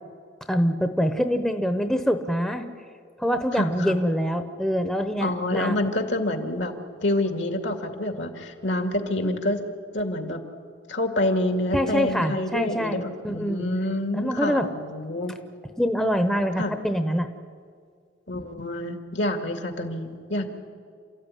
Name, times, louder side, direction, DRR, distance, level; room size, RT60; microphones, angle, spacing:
voice 1, 0.5-2.7 3.2-5.8 11.7-13.7 14.1-14.7 15.8-17.3, equal, 5° left, 7 dB, 1.0 m, -25 dB
voice 2, 3.5-4.0 5.2-6.7 7.0-9.6 9.9-10.4 10.9-13.0 13.3-15.3 16.6-16.7 18.3-20.5, left 1 dB, 65° left, 6 dB, 2.4 m, -27 dB
29.0 x 14.0 x 10.0 m, 2.2 s
head